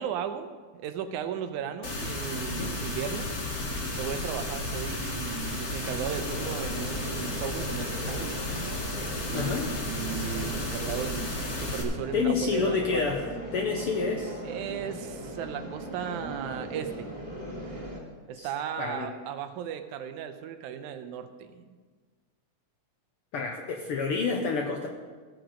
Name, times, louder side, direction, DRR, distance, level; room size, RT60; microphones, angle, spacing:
voice 1, 0.0-3.3 3.9-8.4 9.3-13.1 14.5-17.1 18.3-21.7, right 8 dB, 85° right, 9 dB, 2.1 m, -36 dB
sound 1, 1.8-11.8, left 1 dB, 35° left, 1.8 m, -33 dB
sound 2, 6.1-18.0, right 1 dB, 20° right, 2.1 m, -39 dB
voice 2, 9.3-9.7 12.1-13.2 13.5-14.4 18.3-18.5 18.8-19.1 23.3-24.9, left 5 dB, 70° left, 2 dB, 1.4 m, -28 dB
15.5 x 7.9 x 5.1 m, 1.4 s
omnidirectional pair, 3.5 m